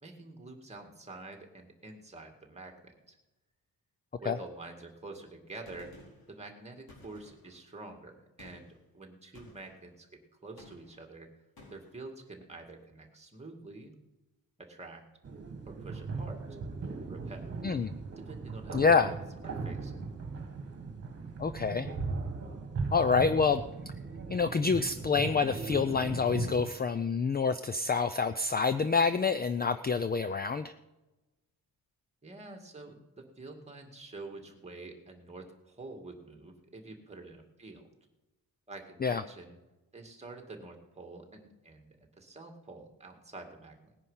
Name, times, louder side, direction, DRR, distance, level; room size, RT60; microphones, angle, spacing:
voice 1, 0.0-3.2 4.2-8.7 8.9-11.3 11.7-13.9 14.6-15.0 15.7-16.4 17.1-17.4 18.3-20.0 32.2-37.8 38.7-39.6 39.9-41.9 42.2-43.9, right 2 dB, 20° right, 4 dB, 2.2 m, -47 dB
Gunshot gunfire, 5.7-6.3 6.9-7.6 8.4-8.8 9.4-9.8 10.6-11.1 11.6-12.0, left 1 dB, 85° left, 4.6 m, -54 dB
sound 1, 15.2-26.7, right 4 dB, 40° right, 1.7 m, -38 dB
voice 2, 18.7-19.1 21.4-21.9 22.9-23.6 24.3-30.7 39.0-39.2, left 5 dB, 25° left, 11 dB, 0.4 m, -27 dB
19.0 x 9.9 x 5.6 m, 1.1 s
wide cardioid pair, 150°, 36 cm